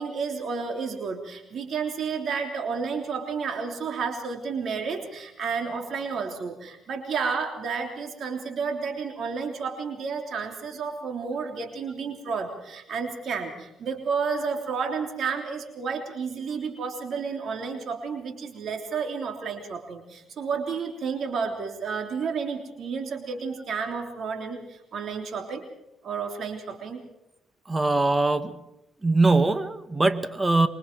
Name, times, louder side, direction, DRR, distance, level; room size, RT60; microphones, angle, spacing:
voice 1, 0.0-25.6 26.0-27.0, right 5 dB, 60° right, 3 dB, 3.4 m, -31 dB
voice 2, 27.7-28.6 29.0-30.7, right 2 dB, 20° right, 10 dB, 1.7 m, -22 dB
27.0 x 23.5 x 4.7 m, 0.89 s
cardioid pair, 90°, 0 cm